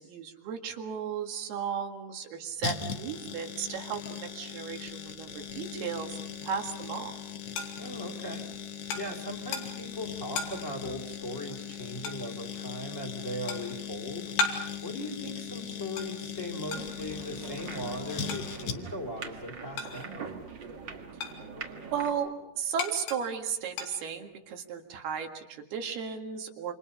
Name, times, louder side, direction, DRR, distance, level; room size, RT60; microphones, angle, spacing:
voice 1, 0.0-7.1 21.9-26.7, right 7 dB, 75° right, 3 dB, 3.8 m, -35 dB
sound 1, 2.6-19.1 19.4-19.5, left 7 dB, 60° left, 1.7 m, -39 dB
Fork on Plate, 7.3-20.4 20.7-24.6, left 4 dB, 90° left, 4.6 m, -39 dB
voice 2, 7.8-8.5 9.0-20.4, left 1 dB, 20° left, 3 dB, 2.9 m, -39 dB
sound 2, 16.7-22.1, right 5 dB, 45° right, 1.6 m, -43 dB
28.0 x 27.0 x 5.7 m, 0.89 s
omnidirectional pair, 4.5 m